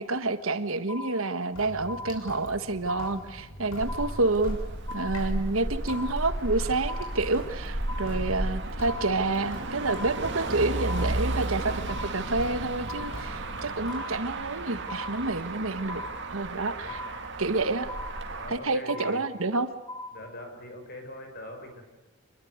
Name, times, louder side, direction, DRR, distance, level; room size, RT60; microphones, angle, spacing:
voice 1, 0.0-4.6 4.9-16.0 16.3-17.0 17.4-17.9 18.5-19.7, right 3 dB, 70° right, 11 dB, 1.5 m, -29 dB
sound 1, 0.9-1.5 1.9-2.5 2.9-3.5 3.9-4.5 4.9-5.5 5.9-6.5 6.9-7.5 7.9-8.5 8.9-9.5 9.9-10.5 10.9-11.5 11.9-12.5 12.9-13.5 13.9-14.5 14.9-15.5 15.9-16.5 16.9-17.5 17.9-18.5 18.9-19.5 19.9-20.5, left 2 dB, 20° left, 4.9 m, -41 dB
Sink (filling or washing) / Drip, 1.5-14.0, equal, 90° left, 6.3 m, -43 dB
Motor vehicle (road), 3.8-18.5, right 2 dB, 55° right, 2.5 m, -34 dB
voice 2, 18.3-19.2 20.1-21.8, left 1 dB, 45° left, 5 dB, 6.0 m, -42 dB
26.0 x 21.5 x 9.6 m, 0.97 s
head